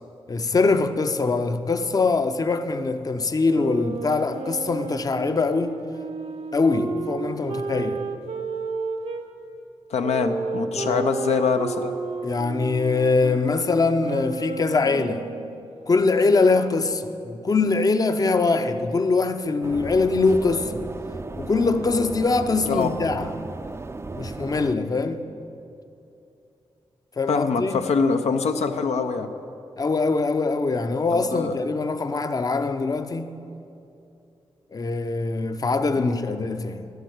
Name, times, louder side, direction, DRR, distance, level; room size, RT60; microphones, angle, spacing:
voice 1, 0.3-5.8 6.5-8.1 10.8-11.0 12.2-15.3 15.9-20.9 21.4-23.3 24.1-25.3 27.2-27.9 29.8-33.4 34.7-36.9, left 3 dB, 35° left, 0.5 m, -23 dB
sound 1, 3.5-9.3 10.0-15.6, right 5 dB, 75° right, 0.9 m, -32 dB
voice 2, 9.9-12.0 22.7-22.9 27.3-29.3 31.1-31.6 36.0-36.2, left 5 dB, 85° left, 0.5 m, -24 dB
sound 2, 19.6-24.8, right 3 dB, 25° right, 0.4 m, -35 dB
11.0 x 8.0 x 6.3 m
cardioid pair, 65°, 11 cm